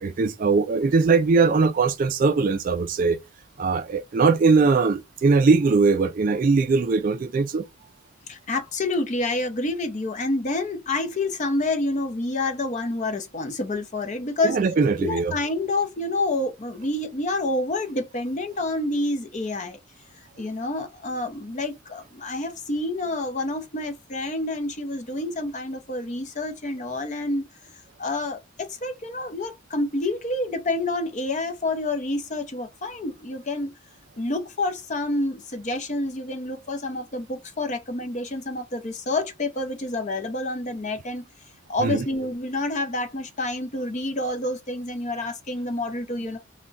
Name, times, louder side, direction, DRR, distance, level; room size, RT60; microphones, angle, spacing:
voice 1, 0.0-3.2 3.6-7.6 14.4-15.4 41.8-42.1, right 4 dB, 40° right, 0.3 m, -20 dB
voice 2, 8.3-14.6 15.0-19.8 20.4-27.5 28.0-33.7 34.1-41.2 41.7-46.4, left 2 dB, 35° left, 0.6 m, -28 dB
3.5 x 2.2 x 3.8 m
head